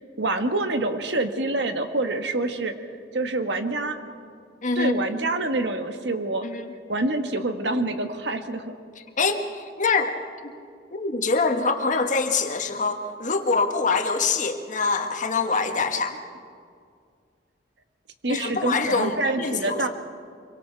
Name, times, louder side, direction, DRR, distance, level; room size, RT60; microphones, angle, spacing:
voice 1, 0.2-2.7 3.1-4.0 4.7-6.4 6.9-8.8 18.2-19.9, right 2 dB, 75° right, 7 dB, 1.4 m, -26 dB
voice 2, 4.6-5.0 6.4-6.7 9.2-10.1 10.4-10.5 10.9-16.2 18.3-19.8, left 4 dB, 45° left, 5 dB, 1.5 m, -24 dB
25.5 x 23.5 x 4.6 m, 2.2 s
head